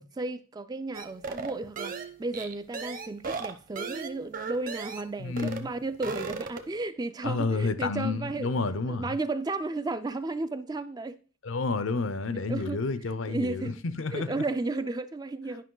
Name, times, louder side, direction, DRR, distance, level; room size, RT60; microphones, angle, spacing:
voice 1, 0.0-8.5 8.9-11.2 12.5-12.8 13.3-13.7 14.1-15.6, right 3 dB, 20° right, 0.3 m, -33 dB
sound 1, 0.9-5.1 5.4-5.7 5.9-6.8, right 4 dB, 40° right, 0.8 m, -36 dB
voice 2, 5.2-5.7 7.2-9.2 11.4-14.4, left 3 dB, 65° left, 0.6 m, -30 dB
10.0 x 5.4 x 3.8 m
head